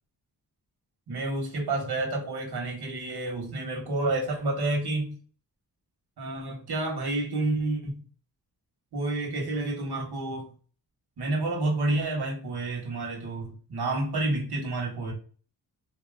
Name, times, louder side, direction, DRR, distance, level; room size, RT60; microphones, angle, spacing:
voice 1, 1.1-5.2 6.2-8.0 8.9-10.5 11.2-15.1, right 2 dB, 80° right, 1.6 m, -29 dB
4.2 x 2.9 x 2.5 m
cardioid pair, 90°, 38 cm